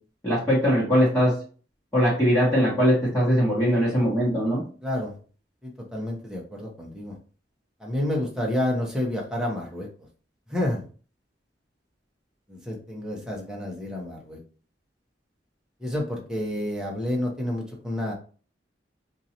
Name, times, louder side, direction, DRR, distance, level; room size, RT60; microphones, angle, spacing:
voice 1, 0.2-1.3 1.9-4.6, equal, 15° left, -9 dB, 1.4 m, -21 dB
voice 2, 4.8-5.2 5.6-7.1 7.8-9.9 10.5-10.8 12.5-14.4 15.8-18.1, left 1 dB, 5° right, -2 dB, 1.0 m, -29 dB
4.7 x 2.6 x 2.9 m, 0.39 s
head